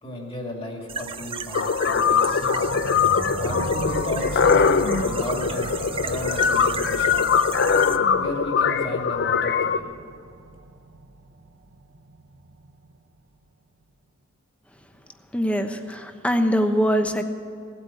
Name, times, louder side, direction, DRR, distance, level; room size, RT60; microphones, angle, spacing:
voice 1, 0.0-2.7 3.4-4.7 5.0-5.7 6.0-7.2 8.1-9.9, left 1 dB, 30° left, 1 dB, 2.5 m, -34 dB
sound 1, 0.9-8.0, right 6 dB, 25° right, 0.5 m, -35 dB
sound 2, 1.5-9.8, left 6 dB, 55° left, 0.6 m, -22 dB
sound 3, 1.9-13.0, right 2 dB, 65° right, 0.9 m, -37 dB
voice 2, 15.3-17.2, equal, 5° left, 6 dB, 1.0 m, -22 dB
17.5 x 8.7 x 8.6 m, 2.4 s
head